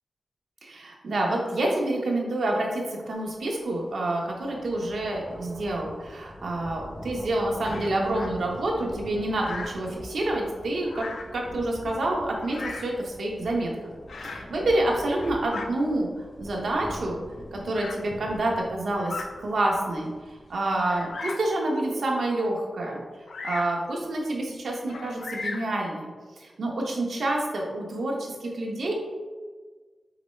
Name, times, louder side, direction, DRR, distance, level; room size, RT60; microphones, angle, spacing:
voice 1, 0.6-11.0 11.3-13.9 14.2-16.1 16.4-17.2 17.5-23.0 23.4-26.1 26.4-28.9, right 1 dB, 75° right, -1 dB, 0.9 m, -28 dB
sound 1, 3.3-3.5 3.8-21.1, left 1 dB, 15° left, 0.6 m, -44 dB
Bird vocalization bird call bird song, 7.6-8.3 9.3-9.9 10.8-11.4 12.4-13.0 14.1-14.5 15.0-15.7 16.6-16.7 17.7-18.0 18.9-19.3 19.9-20.0 20.8-21.5 23.3-23.8 24.9-25.8, left 3 dB, 90° left, 0.4 m, -37 dB
4.9 x 3.2 x 3.1 m, 1.4 s
wide cardioid pair, 150°, 0 cm